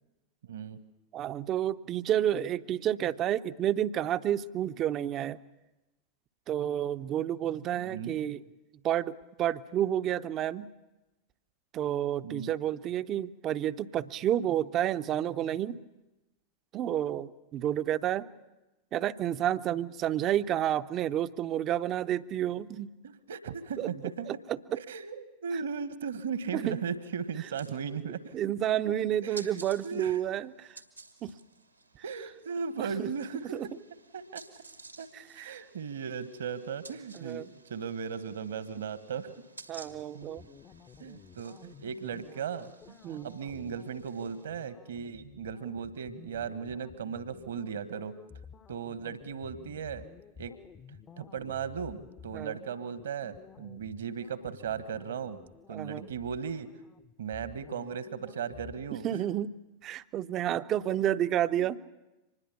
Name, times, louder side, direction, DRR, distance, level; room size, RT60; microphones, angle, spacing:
voice 1, 0.4-0.8 7.5-8.1 12.2-12.5 23.0-24.3 24.7-28.3 29.2-29.6 29.8-30.2 32.0-33.6 34.1-34.4 35.0-35.1 35.3-39.3 40.1-40.3 41.0-42.7 43.1-48.2 48.7-50.0 50.4-50.6 51.2-55.4 55.7-56.7 57.2-59.1, right 6 dB, 65° right, 13 dB, 1.4 m, -37 dB
voice 2, 1.1-5.4 6.5-8.4 8.8-10.7 11.7-15.8 16.7-18.3 18.9-22.9 23.8-23.9 24.3-24.6 26.5-26.8 28.3-30.8 31.2-31.3 32.8-33.1 33.5-33.7 35.1-35.6 37.1-37.5 39.7-40.4 43.0-43.3 52.3-52.6 55.7-56.1 59.0-59.5 59.8-61.8, right 11 dB, 35° right, 14 dB, 0.7 m, -30 dB
sound 1, 27.1-44.5, right 3 dB, 85° right, 2.0 m, -54 dB
sound 2, 39.9-58.9, left 7 dB, 25° left, 0.8 m, -53 dB
25.5 x 20.5 x 7.2 m, 1.0 s
figure-of-eight pair, 90°, 0 cm